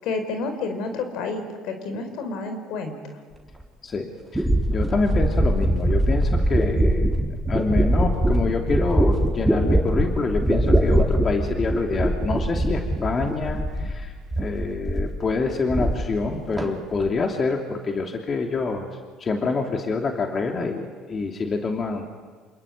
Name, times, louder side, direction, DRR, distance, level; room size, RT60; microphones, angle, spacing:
voice 1, 0.0-3.0, left 3 dB, 70° left, 7 dB, 4.7 m, -30 dB
sound 1, 3.6-3.7 4.3-14.0 14.3-15.2 15.5-16.3 16.6-17.1, right 1 dB, 5° right, 4.2 m, -22 dB
voice 2, 3.8-7.2 7.4-18.9 19.2-22.2, left 4 dB, 40° left, 3 dB, 2.9 m, -27 dB
27.5 x 22.0 x 9.6 m, 1.5 s
supercardioid pair, 75°, 0 cm